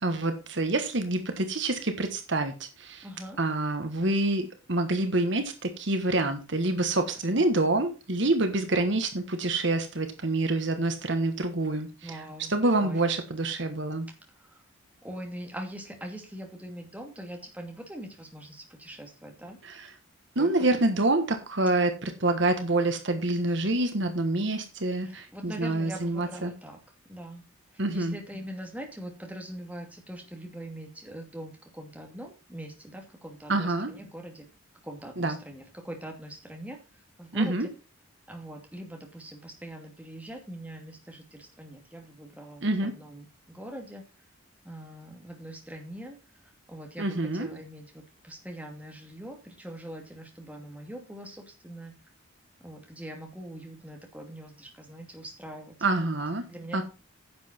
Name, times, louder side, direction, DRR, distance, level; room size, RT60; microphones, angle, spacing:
voice 1, 0.0-3.0 3.4-12.1 12.5-14.1 19.6-19.9 20.3-26.5 27.8-28.1 33.5-33.9 35.2-35.4 37.3-37.7 42.6-42.9 47.0-47.5 55.8-56.4 56.7-56.8, right 2 dB, 55° right, 7 dB, 1.4 m, -27 dB
voice 2, 3.0-3.4 7.4-7.5 8.8-8.9 10.5-10.7 12.0-12.5 12.8-13.1 14.3-14.6 15.0-19.6 20.4-20.5 25.0-26.8 27.1-27.4 27.7-34.5 34.8-37.6 38.3-44.0 44.6-46.2 46.4-51.9 52.6-55.8 56.0-56.2 56.4-56.8, right 1 dB, 5° right, 2 dB, 2.4 m, -42 dB
10.5 x 7.8 x 4.4 m, 0.30 s
head